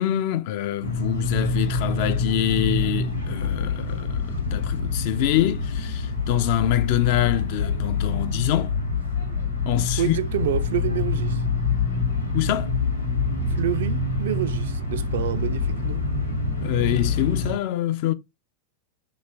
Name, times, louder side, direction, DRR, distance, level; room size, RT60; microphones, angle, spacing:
voice 1, 0.0-8.8 9.7-10.2 12.3-12.7 16.6-18.1, left 12 dB, 50° left, 0.3 m, -25 dB
sound 1, 0.8-17.6, left 4 dB, 85° left, 1.0 m, -26 dB
voice 2, 10.0-11.4 13.5-16.1, right 10 dB, 60° right, 0.3 m, -28 dB
3.1 x 2.5 x 3.3 m
figure-of-eight pair, 90°, 0 cm